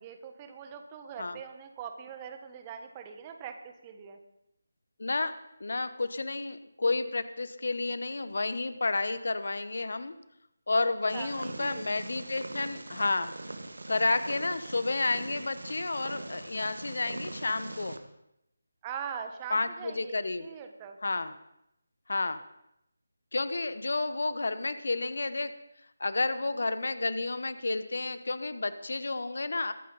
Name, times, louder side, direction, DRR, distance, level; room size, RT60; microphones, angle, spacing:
voice 1, 0.0-4.2 10.8-11.9 18.8-21.0, right 7 dB, 20° right, 6 dB, 1.4 m, -42 dB
voice 2, 5.0-5.3 5.6-10.1 10.7-13.3 13.9-18.0 19.5-20.5 21.0-21.3 22.1-22.4 23.3-25.5 26.0-29.7, left 3 dB, 60° left, 12 dB, 1.0 m, -31 dB
Purr, 11.1-18.0, right 2 dB, 70° right, 1.6 m, -42 dB
22.0 x 9.0 x 4.1 m, 0.83 s
figure-of-eight pair, 160°, 0 cm